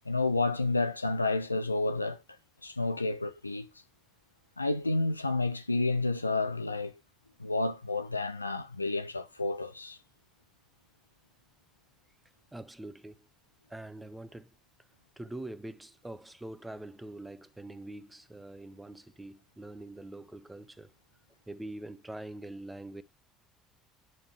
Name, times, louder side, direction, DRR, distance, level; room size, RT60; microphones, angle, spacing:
voice 1, 0.1-2.2 2.6-3.7 4.6-6.9 7.4-10.0, left 3 dB, 85° left, 0.5 m, -30 dB
voice 2, 12.5-13.2 13.7-14.5 15.2-20.9 21.5-23.0, right 1 dB, 10° right, 0.8 m, -44 dB
9.1 x 5.4 x 3.3 m
figure-of-eight pair, 60°, 0 cm